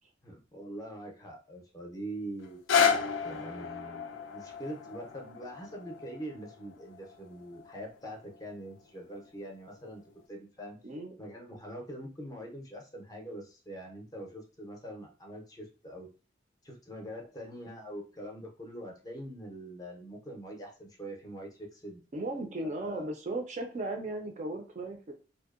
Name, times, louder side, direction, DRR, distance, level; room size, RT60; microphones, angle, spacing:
voice 1, 0.2-2.6 3.2-10.0 10.3-10.8 11.2-16.1 16.6-22.0 22.6-23.1, right 1 dB, 20° left, 1 dB, 0.5 m, -43 dB
sound 1, 2.4-8.5 9.2-9.3, left 6 dB, 90° left, 0.3 m, -32 dB
voice 2, 10.8-11.2 22.1-25.1, right 2 dB, 40° right, 4 dB, 0.4 m, -36 dB
2.6 x 2.0 x 2.4 m, 0.35 s
head